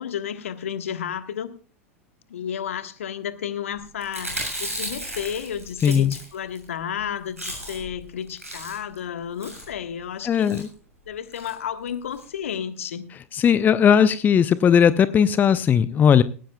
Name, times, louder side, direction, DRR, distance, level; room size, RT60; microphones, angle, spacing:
voice 1, 0.0-1.5 2.3-10.6 11.1-13.1, left 8 dB, 65° left, 1.3 m, -32 dB
Chewing mastication, 4.0-6.6 7.0-7.1 7.3-8.0 8.3-9.0 9.4-9.7 10.3-10.6 11.3-11.5 11.9-12.0 12.1-12.2, right 1 dB, 85° right, 7.2 m, -34 dB
voice 2, 5.8-6.1 10.2-10.7 13.3-16.2, left 8 dB, 25° left, 0.6 m, -18 dB
18.0 x 17.5 x 2.2 m
figure-of-eight pair, 85°, 8 cm